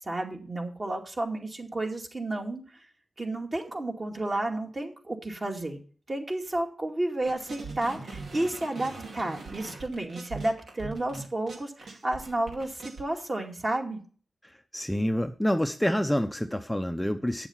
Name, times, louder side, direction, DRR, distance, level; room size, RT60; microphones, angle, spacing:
voice 1, 0.0-2.9 3.2-5.8 6.1-14.0, right 1 dB, 35° right, 2 dB, 2.2 m, -32 dB
sound 1, 7.2-13.0, right 3 dB, 80° right, 2.3 m, -41 dB
voice 2, 14.7-17.5, equal, 5° left, 7 dB, 0.7 m, -27 dB
8.9 x 7.1 x 5.6 m, 0.41 s
cardioid pair, 65°, 0 cm